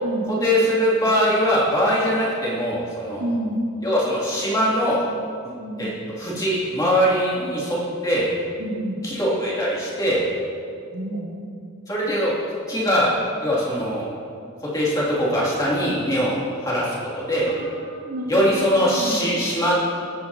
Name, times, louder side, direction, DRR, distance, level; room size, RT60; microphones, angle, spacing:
voice 1, 0.3-3.3 3.8-5.0 5.8-8.3 9.0-10.3 11.9-12.3 12.7-13.1 13.4-14.0 14.7-17.5 18.3-19.7, equal, 15° left, -7 dB, 2.4 m, -22 dB
voice 2, 3.2-3.6 5.6-6.0 8.6-9.0 10.9-11.3 17.5-19.2, equal, 85° right, -4 dB, 2.3 m, -29 dB
16.5 x 8.8 x 2.7 m, 2.4 s
head